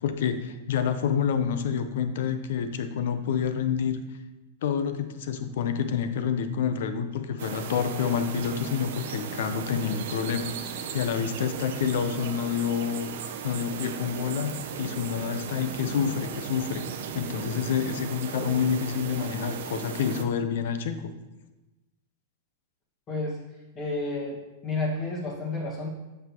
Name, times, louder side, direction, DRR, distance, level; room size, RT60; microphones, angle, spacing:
voice 1, 0.0-4.0 4.6-13.1 13.4-16.9 17.1-21.1, left 7 dB, 70° left, 9 dB, 0.6 m, -28 dB
sound 1, 7.4-20.2, right 7 dB, 70° right, 0.6 m, -36 dB
voice 2, 23.1-23.4 23.7-25.9, left 2 dB, 25° left, -3 dB, 1.6 m, -31 dB
8.1 x 5.6 x 2.9 m, 1.1 s
supercardioid pair, 150°, 0 cm